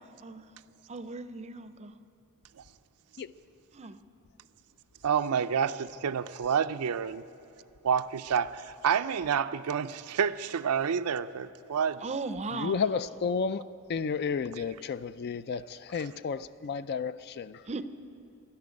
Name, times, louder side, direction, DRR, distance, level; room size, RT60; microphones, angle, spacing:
voice 1, 0.9-1.9 3.7-4.0 12.0-12.9 17.7-17.9, right 3 dB, 30° right, 0.5 m, -37 dB
voice 2, 5.0-7.2 7.8-12.0 14.6-14.7 16.0-16.1, right 7 dB, 80° right, 0.5 m, -29 dB
voice 3, 12.5-13.6 13.9-17.6, left 5 dB, 50° left, 0.4 m, -32 dB
12.5 x 11.5 x 9.6 m
head